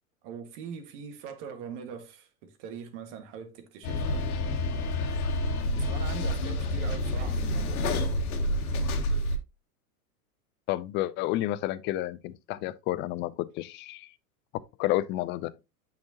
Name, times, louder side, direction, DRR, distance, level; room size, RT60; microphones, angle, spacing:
voice 1, 0.2-4.3 5.8-7.9, right 7 dB, 50° right, 1.8 m, -42 dB
sound 1, 3.8-9.4, left 1 dB, 70° left, 1.6 m, -28 dB
voice 2, 10.7-14.1 14.8-15.5, left 15 dB, 25° left, 0.4 m, -30 dB
8.6 x 5.8 x 2.8 m
hypercardioid pair, 100°, 44 cm